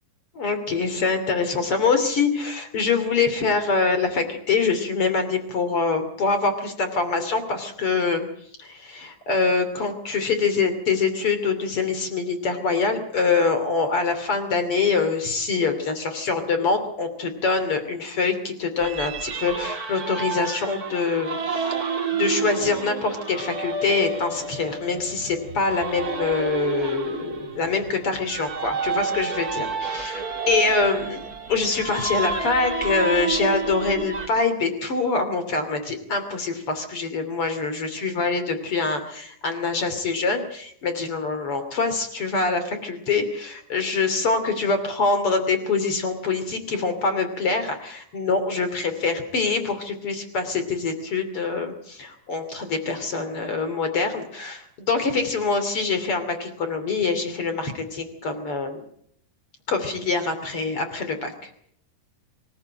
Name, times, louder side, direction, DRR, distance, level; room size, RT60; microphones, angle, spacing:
voice 1, 0.3-8.3 8.6-31.2 31.5-58.8 59.7-61.5, left 4 dB, 35° left, 9 dB, 3.0 m, -25 dB
sound 1, 18.8-34.3, right 4 dB, 35° right, 1.5 m, -30 dB
24.5 x 15.5 x 7.7 m, 0.67 s
omnidirectional pair, 5.2 m